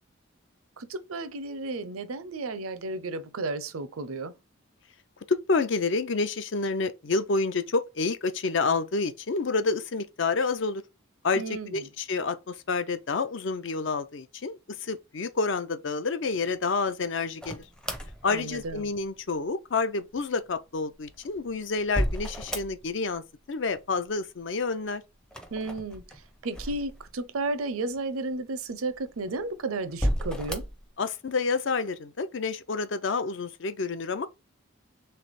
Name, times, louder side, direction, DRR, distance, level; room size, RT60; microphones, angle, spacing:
voice 1, 0.8-4.3 11.4-11.8 18.3-18.8 25.5-26.0 26.4-30.6, right 3 dB, 85° right, 0.6 m, -33 dB
voice 2, 5.3-10.8 11.2-17.6 18.2-23.2 23.5-25.0 31.0-34.3, left 4 dB, 60° left, 0.5 m, -29 dB
sound 1, 17.4-19.1 20.9-23.1 23.4-24.1 25.2-27.4 28.0-28.1 28.9-29.4 29.9-30.9, equal, 5° left, 0.5 m, -33 dB
3.3 x 3.3 x 4.1 m
head